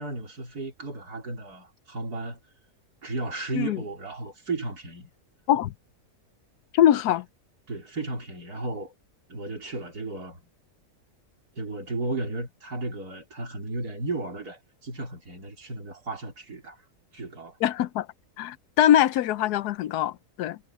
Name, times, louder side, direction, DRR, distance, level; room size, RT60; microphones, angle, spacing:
voice 1, 0.0-2.4 3.0-5.1 7.7-8.9 9.3-10.4 11.6-16.8 17.1-17.6, right 2 dB, 75° right, 4.8 m, -34 dB
voice 2, 6.7-7.3 17.6-18.1 18.4-20.6, left 11 dB, 85° left, 1.2 m, -22 dB
omnidirectional pair, 1.7 m